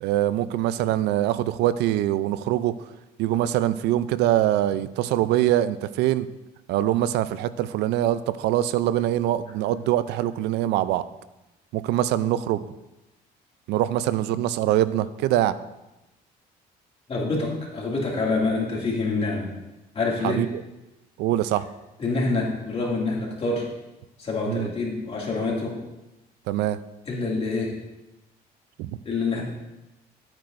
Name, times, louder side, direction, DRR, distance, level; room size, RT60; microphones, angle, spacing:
voice 1, 0.0-2.7 3.2-6.3 6.7-11.0 11.7-12.7 13.7-15.6 20.2-20.6 21.2-21.7 24.5-24.7 26.5-26.8 28.8-29.0, right 13 dB, 85° right, 15 dB, 0.4 m, -23 dB
voice 2, 17.1-19.5 19.9-20.4 22.0-23.7 24.2-25.8 27.1-27.8 29.0-29.4, left 3 dB, 35° left, -3 dB, 2.3 m, -26 dB
11.5 x 8.8 x 2.6 m, 0.99 s
cardioid pair, 110°, 17 cm